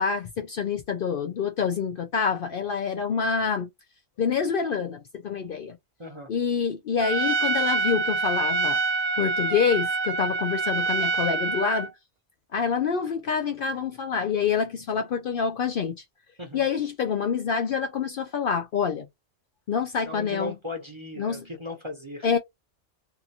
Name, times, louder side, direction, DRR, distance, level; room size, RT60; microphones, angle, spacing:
voice 1, 0.0-3.7 4.2-5.8 6.3-8.8 9.2-11.9 12.5-16.0 16.5-19.1 19.7-20.5 21.2-21.5 22.2-22.4, left 6 dB, 60° left, 0.6 m, -26 dB
Trumpet, 7.0-11.9, right 3 dB, 65° right, 0.4 m, -26 dB
voice 2, 20.0-22.3, left 1 dB, 30° right, 0.7 m, -37 dB
2.8 x 2.4 x 2.6 m
omnidirectional pair, 1.2 m